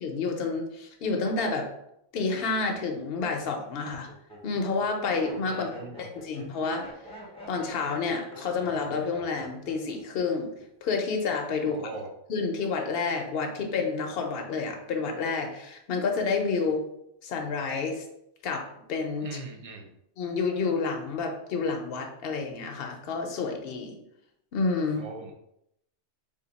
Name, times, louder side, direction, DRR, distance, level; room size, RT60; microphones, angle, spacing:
voice 1, 0.0-1.7 2.1-4.1 4.4-6.8 7.5-10.5 10.8-11.8 12.3-16.8 17.2-18.0 18.4-19.3 20.2-24.0 24.5-25.1, left 4 dB, 60° left, 3 dB, 0.8 m, -29 dB
Laughter, 2.3-2.8 3.4-10.0 10.3-10.8, equal, 5° left, 0.8 m, -45 dB
voice 2, 5.5-6.1 11.7-12.1 19.2-19.9 24.9-25.3, right 3 dB, 45° right, 1 dB, 0.5 m, -40 dB
3.5 x 2.6 x 3.9 m, 0.78 s
omnidirectional pair, 1.2 m